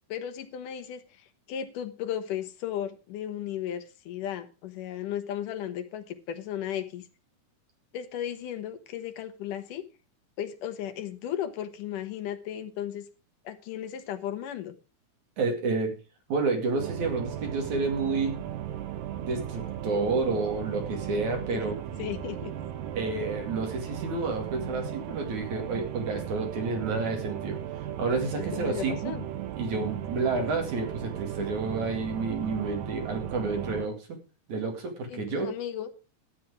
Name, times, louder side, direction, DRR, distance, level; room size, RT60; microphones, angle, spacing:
voice 1, 0.1-7.1 7.9-9.8 10.4-13.1 13.4-14.7 21.5-22.5 28.5-29.2 35.1-35.9, left 10 dB, 75° left, 9 dB, 2.6 m, -35 dB
voice 2, 15.4-15.9 16.3-18.4 19.2-21.7 23.0-27.6 28.0-29.1 29.6-34.2 34.5-35.5, right 3 dB, 60° right, 3 dB, 3.7 m, -30 dB
sound 1, 16.8-33.9, right 10 dB, 90° right, 2.8 m, -36 dB
13.0 x 9.4 x 4.9 m, 0.32 s
omnidirectional pair, 3.8 m